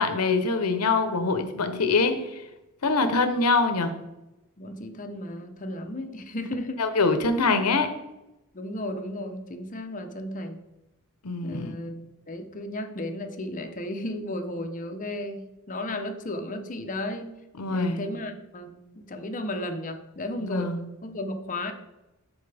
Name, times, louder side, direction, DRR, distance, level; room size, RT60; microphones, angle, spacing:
voice 1, 0.0-2.4 2.8-3.9 6.8-7.9 11.2-11.7 17.6-18.0 20.4-20.9, left 3 dB, 90° left, 9 dB, 0.9 m, -24 dB
voice 2, 4.6-6.8 8.5-10.6 11.4-17.3 17.7-20.7 21.0-21.7, left 1 dB, 35° left, 6 dB, 0.8 m, -34 dB
12.5 x 4.3 x 3.4 m, 0.98 s
head